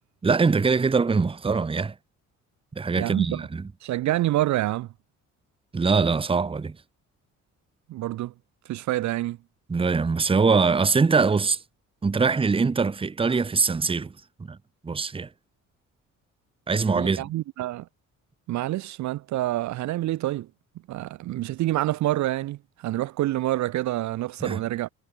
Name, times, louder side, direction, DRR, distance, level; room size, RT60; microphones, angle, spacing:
voice 1, 0.2-1.9 2.7-3.7 5.7-6.8 9.7-11.6 12.0-14.1 14.4-14.6 14.8-15.3 16.7-17.3 24.4-24.6, right 4 dB, 20° right, 0.7 m, -23 dB
voice 2, 3.0-3.5 3.8-4.9 7.9-8.3 8.7-9.4 16.9-17.9 18.5-20.5 20.9-24.9, right 15 dB, 70° right, 0.6 m, -27 dB
cardioid pair, 90°, 30 cm